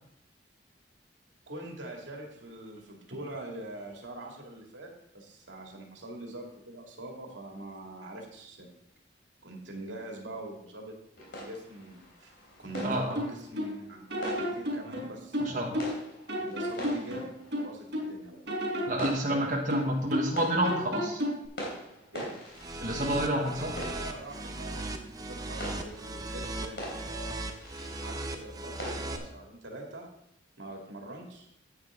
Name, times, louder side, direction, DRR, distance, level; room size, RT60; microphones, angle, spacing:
voice 1, 1.5-8.7 9.4-11.0 11.4-12.3 12.6-15.6 16.4-17.3 17.6-18.4 22.1-22.3 23.3-27.5 27.9-30.1 30.6-31.5, right 1 dB, 85° right, 0 dB, 2.4 m, -43 dB
sound 1, 11.2-29.3, equal, 65° left, 3.3 m, -44 dB
sound 2, 12.7-13.7 14.1-16.0 16.3-18.1 18.5-20.4 20.6-21.5, equal, 65° right, 4.3 m, -32 dB
voice 2, 12.8-13.2 15.4-15.8 18.9-21.2 22.8-23.7, right 1 dB, 45° right, -2 dB, 1.5 m, -29 dB
sound 3, 22.5-29.2, right 2 dB, 20° right, 0.7 m, -37 dB
9.8 x 9.2 x 3.8 m, 0.73 s
head